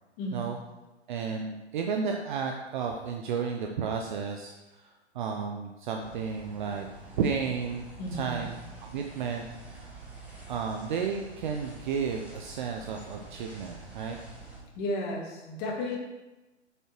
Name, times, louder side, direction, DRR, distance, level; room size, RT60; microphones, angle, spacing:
voice 1, 1.1-6.9 7.2-7.9 8.1-9.5 9.7-9.9 10.5-14.2, right 6 dB, 45° right, 3 dB, 0.8 m, -32 dB
sound 1, 6.0-14.6, right 3 dB, 5° right, 1.8 m, -47 dB
voice 2, 8.0-8.5 14.8-16.0, left 1 dB, 30° left, 0 dB, 2.0 m, -33 dB
7.3 x 6.8 x 4.5 m, 1.1 s
figure-of-eight pair, 120°, 35 cm